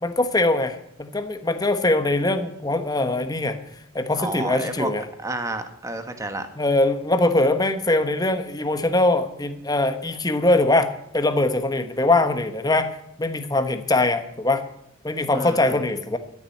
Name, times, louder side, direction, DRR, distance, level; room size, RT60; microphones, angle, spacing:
voice 1, 0.0-3.6 3.9-5.0 6.6-14.6 15.0-16.2, left 2 dB, 20° left, 8 dB, 1.1 m, -22 dB
voice 2, 4.2-4.9 5.2-6.5 15.3-15.8, right 2 dB, 15° right, 7 dB, 1.3 m, -30 dB
14.0 x 7.3 x 9.7 m, 0.77 s
head